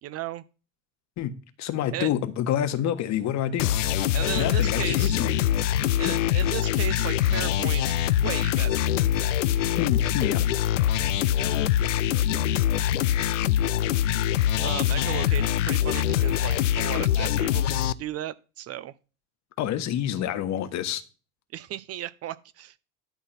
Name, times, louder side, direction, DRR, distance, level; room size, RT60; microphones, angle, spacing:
voice 1, 0.0-0.4 1.9-2.1 4.1-5.2 6.0-8.9 14.6-18.9 21.5-22.8, right 13 dB, 40° right, 0.6 m, -35 dB
voice 2, 1.2-3.7 4.4-5.3 6.0-6.2 9.8-10.4 19.6-21.0, left 10 dB, 50° left, 1.4 m, -28 dB
sound 1, 3.6-17.9, left 11 dB, 80° left, 0.6 m, -24 dB
11.5 x 3.9 x 5.8 m
hypercardioid pair, 80°, 37 cm